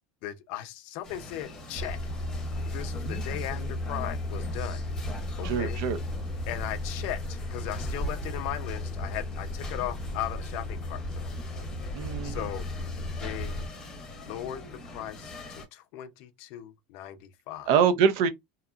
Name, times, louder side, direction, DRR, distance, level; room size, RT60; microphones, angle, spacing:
voice 1, 0.2-2.0 2.7-4.8 5.4-5.8 6.5-11.3 12.2-12.7 13.2-13.5 14.2-17.7, left 13 dB, 60° left, 0.4 m, -37 dB
sound 1, 1.0-15.7, left 2 dB, 20° left, 0.8 m, -44 dB
Truck, 1.7-13.7, left 1 dB, 10° right, 0.8 m, -34 dB
voice 2, 5.4-6.0 11.9-12.5 17.7-18.3, right 7 dB, 65° right, 0.5 m, -24 dB
2.8 x 2.2 x 2.4 m
supercardioid pair, 155°, 3 cm